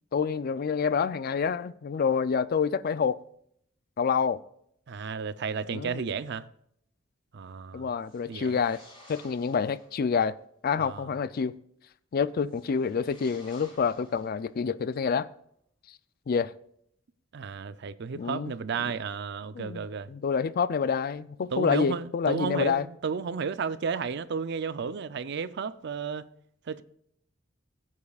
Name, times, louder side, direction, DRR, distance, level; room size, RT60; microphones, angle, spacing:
voice 1, 0.1-3.2 4.0-4.4 5.7-6.1 7.7-8.8 9.1-10.4 10.6-11.5 12.1-15.3 16.3-16.5 18.1-18.5 19.5-22.9, left 6 dB, 50° left, 0.4 m, -27 dB
voice 2, 4.9-6.5 7.3-7.9 8.3-8.6 10.8-11.1 17.3-20.1 21.5-26.3 26.7-26.8, right 5 dB, 60° right, 0.5 m, -33 dB
sound 1, 8.0-10.0 12.4-14.7, left 1 dB, 25° left, 4.0 m, -55 dB
16.5 x 8.4 x 2.4 m
head